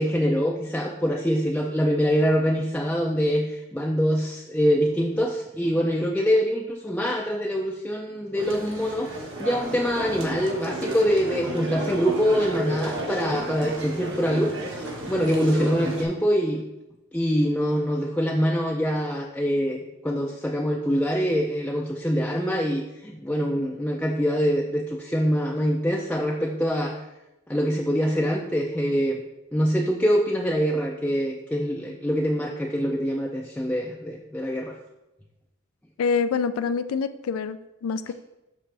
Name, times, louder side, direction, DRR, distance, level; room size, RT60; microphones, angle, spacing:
voice 1, 0.0-16.6 17.1-27.0 27.5-29.2 29.5-34.8, equal, 5° left, -1 dB, 0.4 m, -24 dB
sound 1, 8.3-16.0, right 1 dB, 60° right, 1.5 m, -32 dB
voice 2, 36.0-38.1, left 5 dB, 90° left, 11 dB, 0.4 m, -26 dB
7.4 x 6.2 x 3.4 m, 0.95 s
head